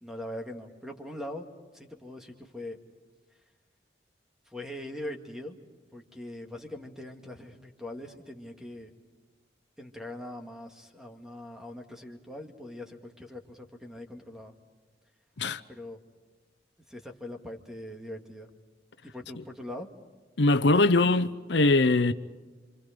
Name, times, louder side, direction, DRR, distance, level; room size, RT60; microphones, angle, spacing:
voice 1, 0.0-1.5 1.7-2.8 4.5-5.6 5.9-8.9 9.8-14.5 15.7-16.0 16.9-18.5 19.0-19.9, left 1 dB, 5° right, 2.0 m, -41 dB
voice 2, 20.4-22.1, left 2 dB, 80° left, 0.8 m, -22 dB
28.0 x 26.0 x 5.2 m
head